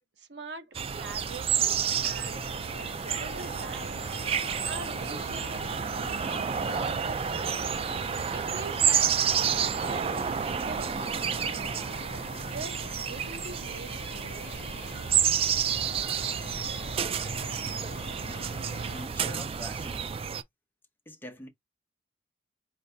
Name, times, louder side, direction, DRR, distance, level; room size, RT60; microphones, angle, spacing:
voice 1, 0.2-1.7 2.0-4.1 4.6-5.7 6.2-7.6 8.3-9.2 9.8-12.0 12.5-14.8, right 4 dB, 80° right, 0.9 m, -43 dB
sound 1, 0.7-19.1, left 5 dB, 90° left, 0.6 m, -46 dB
sound 2, 0.7-20.4, right 7 dB, 35° right, 0.3 m, -30 dB
voice 2, 17.7-18.0 18.9-20.2 21.1-21.5, left 1 dB, 10° left, 0.9 m, -45 dB
4.7 x 2.7 x 3.3 m
head